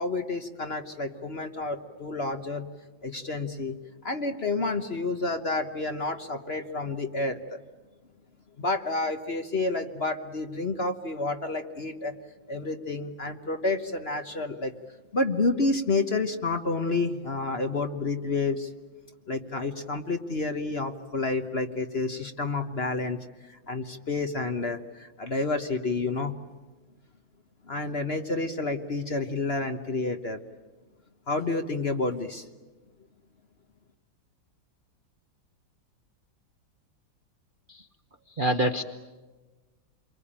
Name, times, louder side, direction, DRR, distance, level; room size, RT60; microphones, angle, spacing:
voice 1, 0.0-2.7 3.0-3.8 4.0-7.6 8.6-12.2 12.5-14.7 15.1-18.7 19.3-26.3 27.6-30.4 31.3-32.5, left 3 dB, 40° left, 6 dB, 1.2 m, -29 dB
voice 2, 38.3-38.8, right 1 dB, 35° right, 5 dB, 0.9 m, -26 dB
28.5 x 23.5 x 8.9 m, 1.3 s
omnidirectional pair, 2.1 m